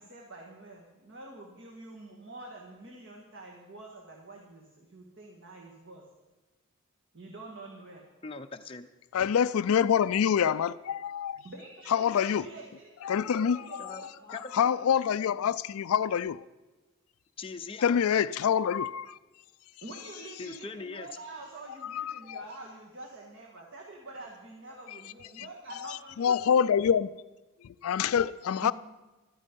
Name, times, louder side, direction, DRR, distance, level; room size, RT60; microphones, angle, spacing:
voice 1, 0.0-6.0 7.1-8.1 11.4-15.1 19.8-26.4 28.6-28.7, right 2 dB, 55° right, 0 dB, 1.8 m, -47 dB
voice 2, 8.2-8.9 13.8-14.0 14.3-14.6 17.4-18.0 20.4-21.1, left 4 dB, 25° left, 6 dB, 0.5 m, -41 dB
voice 3, 9.1-11.4 11.9-12.4 13.0-16.4 17.8-19.2 21.8-22.4 25.4-25.5 25.8-27.1 27.6-28.7, left 8 dB, 75° left, 16 dB, 0.4 m, -26 dB
14.0 x 12.5 x 5.3 m, 1.2 s
head